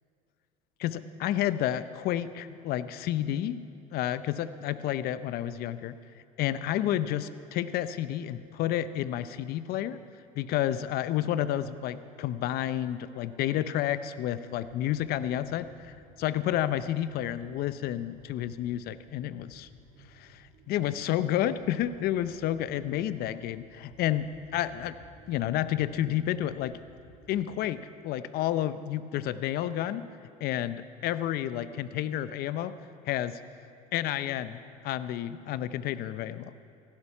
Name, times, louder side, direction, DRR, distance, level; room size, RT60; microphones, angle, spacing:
voice 1, 0.8-3.7 3.9-6.0 6.4-10.0 10.4-19.7 20.1-24.9 25.3-26.8 27.3-30.1 30.4-32.8 33.1-33.4 33.9-36.5, left 12 dB, 55° left, 14 dB, 0.7 m, -30 dB
sound 1, 14.5-27.6, right 3 dB, 45° right, 3.8 m, -56 dB
15.5 x 11.5 x 5.8 m, 2.5 s
supercardioid pair, 90°, 19 cm